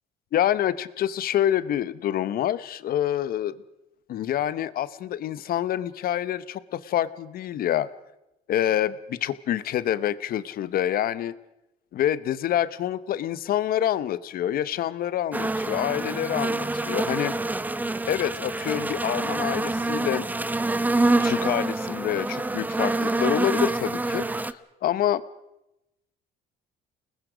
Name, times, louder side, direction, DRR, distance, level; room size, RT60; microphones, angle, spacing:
voice 1, 0.3-3.5 4.1-7.9 8.5-11.4 11.9-17.3 18.1-20.3 21.2-25.2, left 11 dB, 60° left, 17 dB, 0.9 m, -27 dB
sound 1, 15.3-24.5, right 2 dB, 10° right, 0.7 m, -26 dB
29.0 x 20.0 x 5.1 m, 0.91 s
cardioid pair, 110°, 17 cm